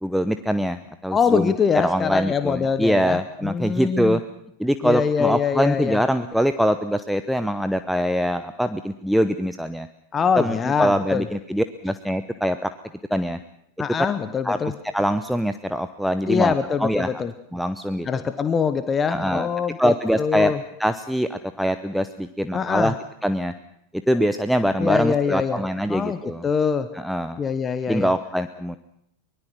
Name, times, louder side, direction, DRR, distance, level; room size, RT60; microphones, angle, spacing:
voice 1, 0.0-4.2 4.6-9.9 10.4-12.7 13.1-13.4 14.4-14.6 14.9-16.5 16.8-17.2 17.5-18.1 19.1-19.5 19.8-20.5 20.8-22.9 23.2-23.5 23.9-26.5 26.9-27.4 27.9-28.8, equal, ahead, 10 dB, 0.9 m, -23 dB
voice 2, 1.1-4.2 4.8-6.0 10.1-11.3 13.8-14.7 16.3-17.3 18.1-20.6 22.5-22.9 24.8-25.6 25.9-26.9 27.4-28.1, left 6 dB, 20° left, 12 dB, 1.1 m, -24 dB
24.0 x 21.5 x 6.2 m, 0.75 s
figure-of-eight pair, 90°, 0 cm